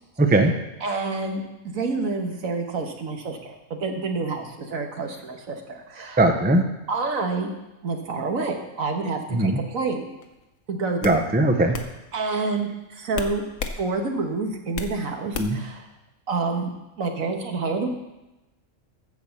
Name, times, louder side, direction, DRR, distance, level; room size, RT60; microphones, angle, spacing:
voice 1, 0.2-0.5 6.2-6.6 9.3-9.6 11.0-11.8 15.4-15.6, right 2 dB, 10° right, 6 dB, 0.6 m, -19 dB
voice 2, 0.8-6.2 6.9-7.5 7.8-10.1 10.7-11.2 12.1-13.4 13.8-15.9 16.3-17.9, right 3 dB, 85° right, 4 dB, 1.7 m, -28 dB
sound 1, 10.2-10.4 11.0-11.2 11.7-11.9 13.1-13.8 14.2-15.0 15.3-15.7, left 5 dB, 80° left, 1.3 m, -32 dB
14.0 x 4.9 x 7.1 m, 1.0 s
omnidirectional pair, 1.4 m